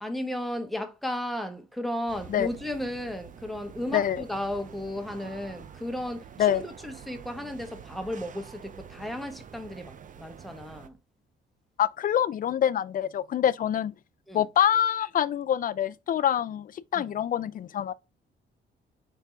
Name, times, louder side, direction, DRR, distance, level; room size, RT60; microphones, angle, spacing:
voice 1, 0.0-11.0 14.3-14.5 17.0-17.1, left 1 dB, ahead, 1.0 m, -34 dB
sound 1, 2.1-10.9, right 8 dB, 40° right, 0.6 m, -47 dB
voice 2, 3.9-4.2 6.4-6.6 11.8-13.9 14.3-17.9, left 10 dB, 45° left, 0.4 m, -25 dB
4.5 x 3.3 x 3.4 m
cardioid pair, 90°, 20 cm